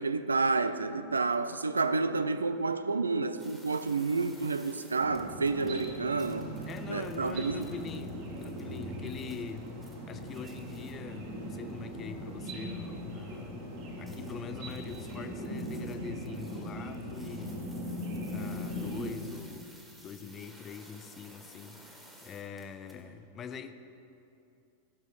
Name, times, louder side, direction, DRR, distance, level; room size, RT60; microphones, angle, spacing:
voice 1, 0.0-6.5 6.9-7.7, right 3 dB, 75° right, 0.4 m, -30 dB
sound 1, 3.4-10.9 14.1-23.0, equal, 5° right, 1.8 m, -57 dB
sound 2, 5.0-19.1, equal, 45° right, 2.4 m, -39 dB
voice 2, 6.7-9.8 10.0-13.7 14.0-17.6 18.3-19.7 20.0-23.7, left 6 dB, 25° left, 0.6 m, -44 dB
15.5 x 6.7 x 4.7 m
figure-of-eight pair, 90°, 0 cm